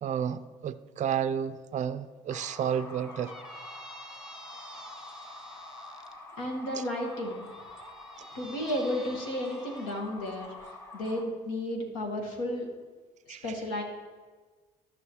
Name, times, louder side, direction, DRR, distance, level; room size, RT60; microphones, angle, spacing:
voice 1, 0.0-3.3 13.3-13.5, right 8 dB, 40° right, 13 dB, 0.4 m, -31 dB
sound 1, 2.3-11.2, left 2 dB, 15° left, 1.2 m, -46 dB
Squeak, 3.1-6.1 7.0-10.0, right 1 dB, 5° right, 1.0 m, -51 dB
voice 2, 6.4-7.5 8.3-10.5 10.9-12.7 13.3-13.8, left 1 dB, 75° left, 1 dB, 1.4 m, -33 dB
13.5 x 6.0 x 2.9 m, 1.4 s
hypercardioid pair, 55°, 19 cm